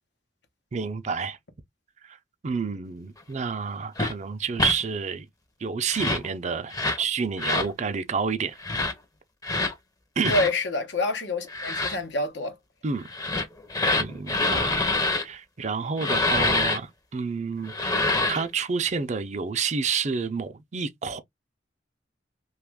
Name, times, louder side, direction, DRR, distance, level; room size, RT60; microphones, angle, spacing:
voice 1, 0.7-1.4 2.1-2.2 2.4-5.3 5.6-8.6 10.2-10.3 12.8-13.0 14.0-14.9 15.2-17.7 18.3-21.2, right 5 dB, 40° right, 0.5 m, -29 dB
sound 1, 4.0-4.1 4.6-4.8 5.8-6.3 6.7-7.0 7.4-7.7 8.6-8.9 9.4-9.7 10.2-10.5 11.5-12.0 13.1-15.2 16.0-16.8 17.7-18.5, left 2 dB, 20° left, 0.6 m, -25 dB
voice 2, 10.3-12.6, left 2 dB, 90° left, 0.8 m, -27 dB
3.0 x 2.4 x 3.4 m
head